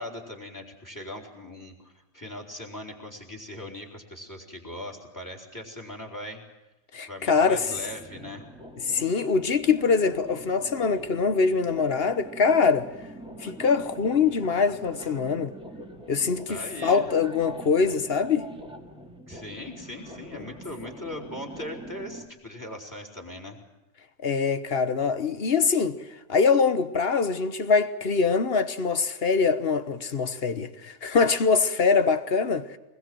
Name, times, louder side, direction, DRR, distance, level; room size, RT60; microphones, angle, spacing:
voice 1, 0.0-6.4 7.1-8.4 16.5-17.1 19.3-23.6, left 1 dB, 10° left, 3.8 m, -39 dB
voice 2, 6.9-7.8 8.9-12.9 13.4-15.5 16.1-18.5 20.3-20.4 24.2-26.0 26.3-32.8, left 5 dB, 45° left, 1.3 m, -23 dB
sound 1, 7.5-22.3, right 1 dB, 5° right, 2.5 m, -44 dB
24.0 x 21.0 x 7.7 m
omnidirectional pair, 1.5 m